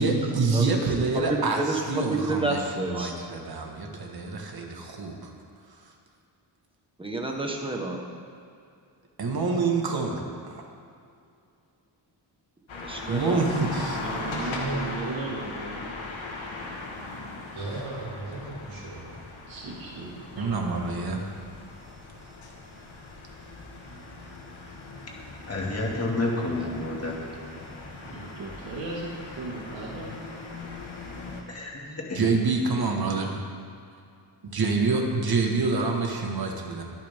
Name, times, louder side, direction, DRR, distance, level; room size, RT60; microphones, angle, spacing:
voice 1, 0.0-5.3 5.8-5.9 9.2-10.2 10.5-10.6 13.1-14.0 17.1-17.2 20.3-21.2 32.1-33.4 34.5-36.8, right 3 dB, 50° right, 1 dB, 1.8 m, -26 dB
voice 2, 0.5-0.8 1.1-3.1 7.0-8.0 12.8-13.4 26.6-26.9, right 2 dB, 10° right, 0 dB, 1.4 m, -30 dB
sound 1, 12.7-31.4, left 3 dB, 75° left, 1.9 m, -39 dB
voice 3, 13.2-13.7 14.1-15.1 17.5-19.1, right 2 dB, 85° right, -5 dB, 3.9 m, -36 dB
voice 4, 13.9-15.9 19.5-20.6 28.0-30.1, right 3 dB, 70° right, -6 dB, 2.4 m, -37 dB
voice 5, 25.5-27.4 31.5-32.3, left 2 dB, 30° left, -2 dB, 2.3 m, -30 dB
23.0 x 8.8 x 3.7 m, 2.5 s
wide cardioid pair, 155°, 46 cm